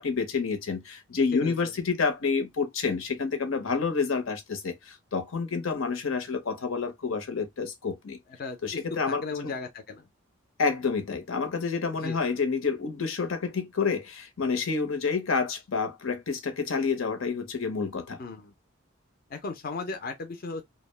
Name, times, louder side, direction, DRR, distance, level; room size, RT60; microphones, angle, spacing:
voice 1, 0.0-8.2 8.6-9.5 10.6-18.2, left 5 dB, 85° left, 0.7 m, -29 dB
voice 2, 1.3-1.7 8.4-8.8 9.1-10.1 12.0-12.2 18.2-18.5 19.3-20.6, left 3 dB, 45° left, 0.4 m, -36 dB
2.3 x 2.0 x 3.2 m
head